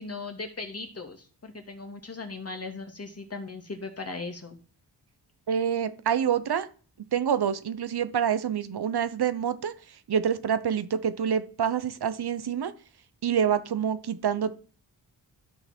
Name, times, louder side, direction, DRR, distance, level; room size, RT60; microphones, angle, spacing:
voice 1, 0.0-4.6, left 3 dB, 35° left, 4 dB, 2.4 m, -38 dB
voice 2, 5.5-6.7 7.1-12.7 13.2-14.5, right 8 dB, 65° right, 12 dB, 1.0 m, -27 dB
13.0 x 5.6 x 4.5 m, 0.38 s
cardioid pair, 70°, 41 cm